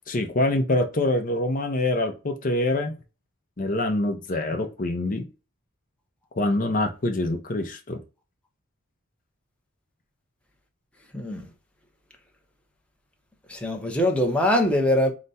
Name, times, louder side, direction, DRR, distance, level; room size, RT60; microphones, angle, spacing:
voice 1, 0.1-3.0 3.6-5.3 6.4-8.0, left 2 dB, 40° left, 0.6 m, -25 dB
voice 2, 11.1-11.4 13.5-15.1, left 1 dB, 5° left, 0.8 m, -22 dB
5.0 x 2.2 x 4.0 m
head